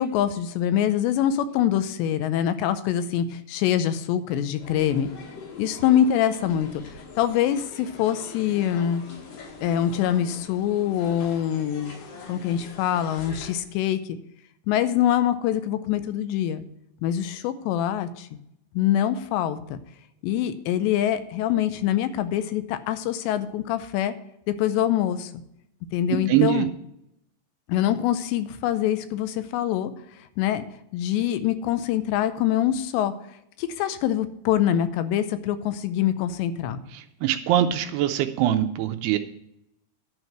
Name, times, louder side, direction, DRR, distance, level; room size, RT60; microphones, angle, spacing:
voice 1, 0.0-5.1 5.6-6.8 7.2-9.0 9.6-11.9 12.3-14.2 14.7-16.6 17.0-18.3 18.7-19.8 20.2-24.1 24.5-25.3 25.9-26.7 27.7-29.9 30.2-30.6 30.9-33.1 33.6-36.8, left 10 dB, 80° left, 11 dB, 2.8 m, -24 dB
sound 1, 4.6-13.6, left 4 dB, 65° left, 3.7 m, -43 dB
voice 2, 26.3-26.7 36.9-39.2, right 12 dB, 80° right, 8 dB, 2.4 m, -23 dB
11.0 x 4.6 x 7.8 m, 0.79 s
omnidirectional pair, 5.2 m